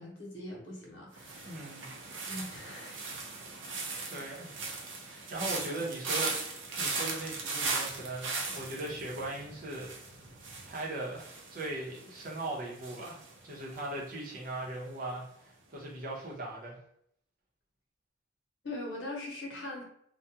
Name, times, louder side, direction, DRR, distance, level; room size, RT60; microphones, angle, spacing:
voice 1, 0.0-1.7 2.3-3.0 18.6-19.8, left 1 dB, 70° left, -2 dB, 0.9 m, -41 dB
sound 1, 1.2-14.2 14.5-14.9, right 3 dB, 85° right, 0.6 m, -38 dB
voice 2, 1.4-1.9 4.1-4.6 5.0-6.4 6.8-9.9 10.7-16.8, right 2 dB, 50° right, -4 dB, 0.8 m, -39 dB
2.3 x 2.2 x 2.7 m, 0.70 s
head